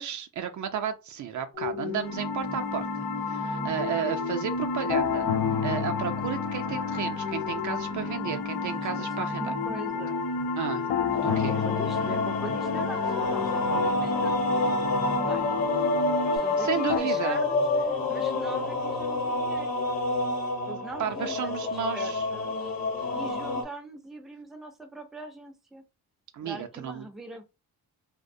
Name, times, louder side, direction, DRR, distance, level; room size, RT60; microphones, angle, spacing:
voice 1, 0.0-5.3 5.6-9.5 10.6-11.6 16.6-17.4 21.0-22.3 26.3-27.1, right 8 dB, 55° right, 0.5 m, -33 dB
sound 1, 1.5-16.4, left 2 dB, 30° left, 0.7 m, -34 dB
sound 2, 2.0-17.0, left 7 dB, 75° left, 0.5 m, -32 dB
voice 2, 7.9-10.2 11.0-14.7 15.2-15.5 16.2-19.7 20.7-22.7 23.1-25.8 26.4-27.4, right 1 dB, ahead, 0.5 m, -42 dB
sound 3, 11.1-23.6, left 2 dB, 45° left, 1.0 m, -28 dB
2.3 x 2.1 x 2.6 m
cardioid pair, 75°, 37 cm